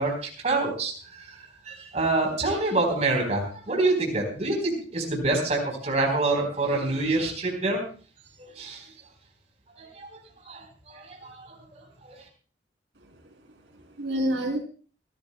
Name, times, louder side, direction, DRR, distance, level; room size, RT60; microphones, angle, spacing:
voice 1, 0.0-7.8 8.4-8.9 9.8-10.1 10.5-12.1, right 2 dB, 40° right, 1 dB, 4.0 m, -27 dB
voice 2, 13.0-14.6, equal, 80° right, 2 dB, 3.6 m, -30 dB
27.5 x 13.0 x 2.2 m, 0.40 s
head